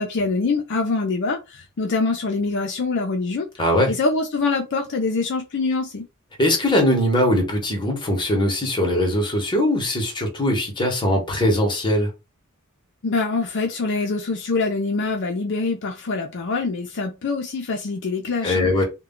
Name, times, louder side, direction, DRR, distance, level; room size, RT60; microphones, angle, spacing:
voice 1, 0.0-3.5 3.9-6.1 13.0-18.7, left 3 dB, 55° left, 0.5 m, -24 dB
voice 2, 3.6-3.9 6.4-12.1 18.4-18.8, left 1 dB, 20° left, 0.9 m, -21 dB
2.3 x 2.1 x 3.6 m
head